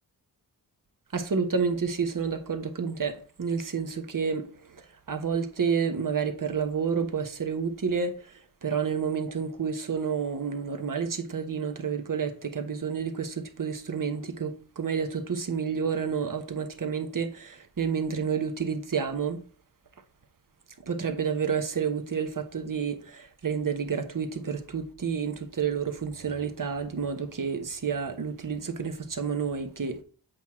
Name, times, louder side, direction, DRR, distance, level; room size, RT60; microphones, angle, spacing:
voice 1, 1.1-3.1 3.4-4.4 5.1-8.1 8.6-17.5 17.8-19.4 20.9-23.0 23.4-30.0, right 6 dB, 45° right, 1.2 m, -29 dB
8.1 x 3.1 x 5.9 m
cardioid pair, 55°, 45 cm